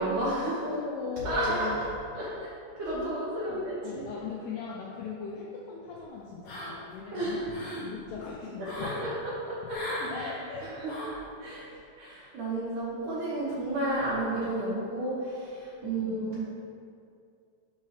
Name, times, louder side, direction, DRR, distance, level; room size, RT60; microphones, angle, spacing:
voice 1, 0.0-0.7 1.2-1.8 2.2-2.5 2.8-4.0 7.1-7.4 8.6-9.1 9.5-10.3 10.8-11.0 11.4-11.7 12.0-16.4, right 1 dB, 90° right, -9 dB, 1.8 m, -32 dB
voice 2, 0.6-1.8 2.9-7.5 7.8-8.9 10.1-11.0 15.8-16.1, left 5 dB, 90° left, -4 dB, 2.2 m, -39 dB
sound 1, 6.4-7.0 7.3-7.9 8.6-9.0 9.7-10.1 10.8-11.2, equal, 60° left, 1.6 m, -38 dB
6.5 x 3.2 x 5.5 m, 2.4 s
omnidirectional pair, 5.2 m